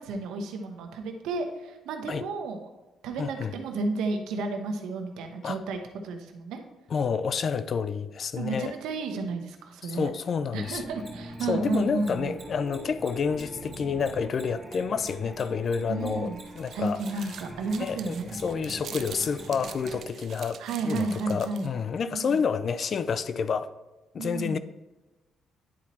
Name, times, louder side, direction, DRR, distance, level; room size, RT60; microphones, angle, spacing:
voice 1, 0.0-2.6 3.0-6.6 8.4-10.1 10.5-12.3 15.9-16.4 16.7-18.4 20.6-21.7 22.1-22.4 24.2-24.6, right 3 dB, 90° right, 0.9 m, -32 dB
voice 2, 3.2-3.5 5.4-5.6 6.9-8.7 9.8-10.8 11.4-17.0 17.8-23.7 24.1-24.6, left 6 dB, 50° left, 0.4 m, -29 dB
sound 1, 10.5-20.0, right 1 dB, ahead, 1.6 m, -44 dB
Mechanisms, 10.7-17.4 17.7-19.4, right 3 dB, 25° right, 2.6 m, -49 dB
sound 2, 16.1-21.8, right 8 dB, 65° right, 0.5 m, -45 dB
9.9 x 4.3 x 4.1 m
cardioid pair, 90°, 0 cm